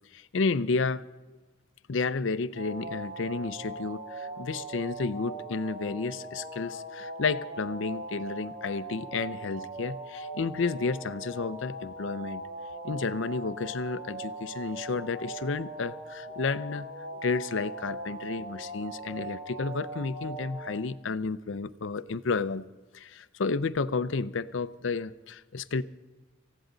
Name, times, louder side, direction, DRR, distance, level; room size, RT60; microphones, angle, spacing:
voice 1, 0.1-1.0 1.3-1.4 1.9-12.4 12.8-16.9 17.2-22.7 22.9-25.8, left 4 dB, 65° left, 15 dB, 0.5 m, -31 dB
sound 1, 2.5-20.7, right 2 dB, 45° right, 4.2 m, -40 dB
19.0 x 15.5 x 3.9 m, 1.2 s
head